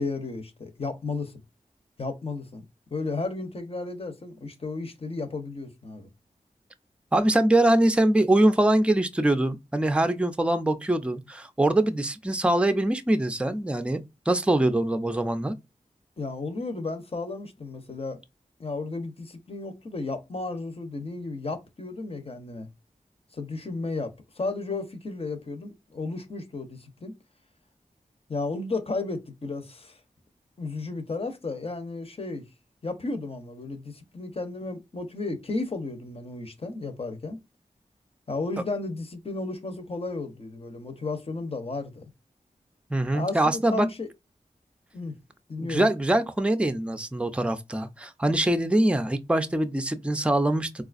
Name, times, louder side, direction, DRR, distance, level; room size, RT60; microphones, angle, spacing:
voice 1, 0.0-1.4 2.0-2.6 2.9-6.1 16.2-18.2 18.6-22.7 23.3-27.2 28.3-30.0 30.6-32.5 32.8-37.4 38.3-42.0 43.1-44.1 44.9-45.2 45.5-45.9, left 3 dB, 45° left, 0.8 m, -33 dB
voice 2, 7.1-14.0 14.3-15.5 42.9-43.9 45.6-50.8, right 1 dB, 10° right, 0.5 m, -23 dB
3.8 x 2.4 x 2.5 m
cardioid pair, 45°, 14 cm